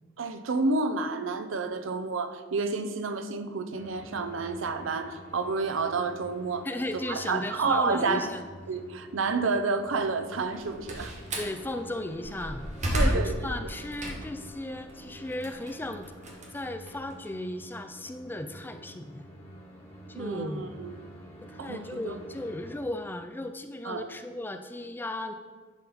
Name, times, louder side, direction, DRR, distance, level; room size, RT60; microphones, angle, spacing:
voice 1, 0.2-6.7 6.9-8.3 8.7-11.1 12.9-13.3 13.6-13.7 20.2-20.9 21.6-22.2 23.8-24.1, right 4 dB, 75° right, 9 dB, 0.6 m, -30 dB
sound 1, 3.7-22.8, right 1 dB, 35° left, 1.6 m, -48 dB
voice 2, 6.6-8.4 11.4-12.7 13.0-16.1 16.5-19.3 20.1-20.8 21.5-25.3, left 1 dB, 10° left, 8 dB, 0.3 m, -36 dB
Slam, 10.4-11.6 12.1-14.5 14.9-17.3, equal, 35° right, 1.2 m, -31 dB
10.5 x 4.0 x 4.2 m, 1.4 s
head